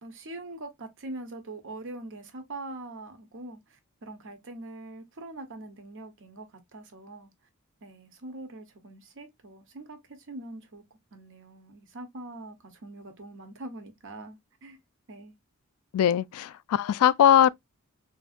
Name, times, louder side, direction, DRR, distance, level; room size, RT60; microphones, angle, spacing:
voice 1, 0.0-7.3 7.8-10.8 11.1-14.8 15.1-15.3, right 2 dB, 60° right, 0.9 m, -43 dB
voice 2, 15.9-17.5, left 10 dB, 75° left, 0.3 m, -21 dB
3.6 x 2.7 x 2.4 m
head